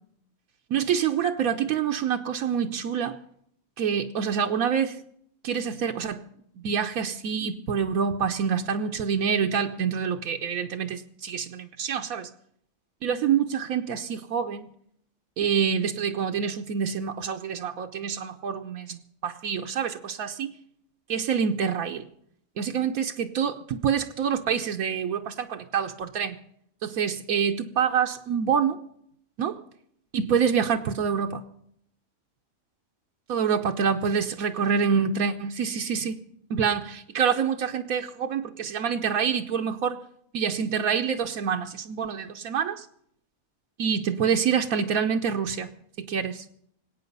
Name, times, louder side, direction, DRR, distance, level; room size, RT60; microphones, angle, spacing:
voice 1, 0.7-3.2 3.8-5.0 5.4-6.2 6.6-12.3 13.0-14.7 15.4-20.5 21.1-22.0 22.6-26.4 26.8-28.8 29.4-29.6 30.1-31.4 33.3-36.2 36.5-40.0 40.3-42.9 43.8-45.7 46.0-46.4, right 7 dB, 80° right, 1.2 m, -26 dB
25.0 x 8.9 x 5.4 m
omnidirectional pair, 1.5 m